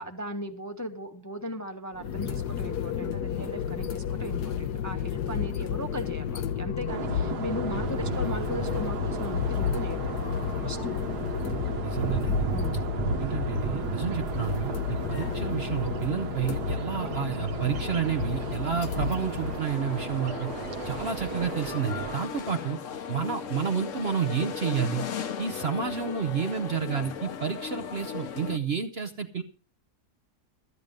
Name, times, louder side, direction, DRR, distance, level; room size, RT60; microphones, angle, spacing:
voice 1, 0.0-10.2 10.6-10.9 12.5-12.9, equal, 15° left, 5 dB, 0.7 m, -37 dB
sound 1, 1.9-19.6, left 8 dB, 85° left, 1.5 m, -32 dB
sound 2, 6.9-22.1, right 5 dB, 85° right, 1.6 m, -35 dB
voice 2, 11.8-12.4 13.2-20.5 20.8-22.8 23.1-25.0 25.4-29.4, right 7 dB, 50° right, 5 dB, 0.8 m, -30 dB
sound 3, 17.5-28.6, left 7 dB, 55° left, 1.1 m, -37 dB
13.0 x 9.7 x 5.1 m, 0.39 s
omnidirectional pair, 1.7 m